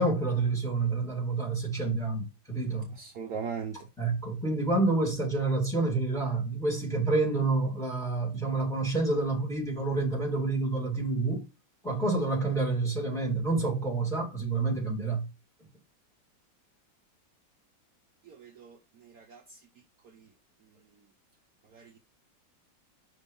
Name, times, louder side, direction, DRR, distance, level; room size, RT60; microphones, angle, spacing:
voice 1, 0.0-2.9 4.0-11.4 11.8-15.3, right 3 dB, ahead, 2.1 m, -28 dB
voice 2, 2.9-3.9 18.2-19.6 20.1-20.3 21.7-21.9, right 6 dB, 65° right, 1.1 m, -40 dB
5.5 x 3.5 x 5.3 m
omnidirectional pair, 1.9 m